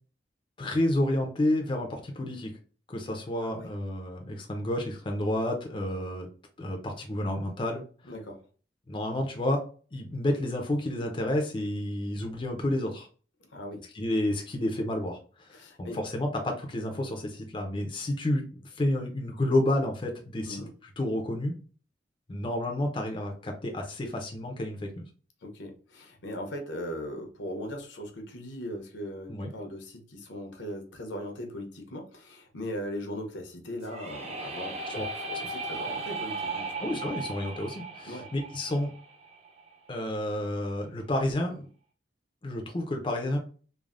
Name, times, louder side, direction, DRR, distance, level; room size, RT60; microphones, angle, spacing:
voice 1, 0.6-2.5 2.9-6.3 6.6-7.8 8.9-9.6 9.9-13.1 13.9-20.6 21.0-21.6 22.3-25.0 29.3-29.5 34.9-35.4 36.8-39.0 39.9-41.7 42.4-43.4, left 1 dB, 30° left, 2 dB, 0.4 m, -30 dB
voice 2, 8.0-8.4 13.5-13.8 15.5-16.0 20.5-20.7 25.4-34.9 35.3-36.7 38.0-38.3, equal, 80° left, 3 dB, 0.7 m, -39 dB
sound 1, 33.8-39.7, right 3 dB, 35° right, 0.5 m, -37 dB
3.2 x 2.0 x 2.4 m, 0.39 s
head